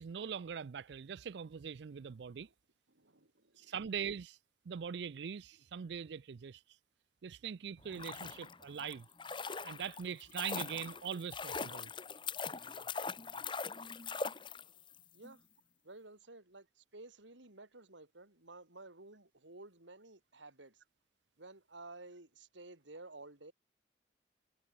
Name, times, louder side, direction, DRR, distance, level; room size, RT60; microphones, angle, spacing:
voice 1, 0.0-2.5 3.6-4.4 4.7-6.6 7.2-9.1 9.6-11.9, right 7 dB, 70° right, 0.4 m, -42 dB
voice 2, 2.9-3.8 15.1-15.5 15.8-20.8 21.4-23.5, right 2 dB, 85° right, 3.9 m, -54 dB
sound 1, 7.8-15.0 15.2-15.3, left 5 dB, 25° left, 1.1 m, -42 dB
head